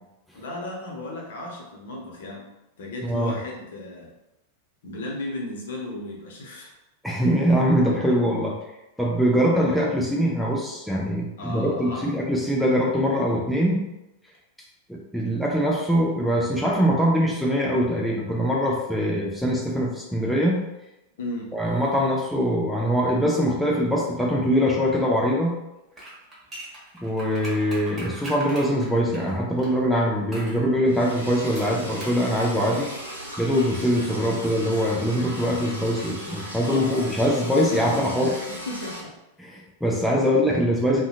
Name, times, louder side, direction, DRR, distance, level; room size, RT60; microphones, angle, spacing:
voice 1, 0.3-2.5 2.8-4.1 4.8-6.7 11.4-12.1 21.2-21.5 36.6-37.0 38.7-39.1, left 1 dB, 60° left, -2 dB, 0.7 m, -35 dB
voice 2, 3.0-3.4 7.0-8.6 9.0-13.8 14.9-20.7 21.5-25.6 27.0-32.9 33.4-38.4 39.4-41.1, equal, ahead, -3 dB, 0.4 m, -23 dB
sound 1, 25.9-29.7 30.3-30.6 31.6-32.2 32.5-32.6, right 1 dB, 15° right, 0.9 m, -40 dB
Liquid, 30.9-39.0, equal, 85° right, 0.6 m, -37 dB
2.7 x 2.2 x 2.3 m, 0.93 s
figure-of-eight pair, 90°, 0 cm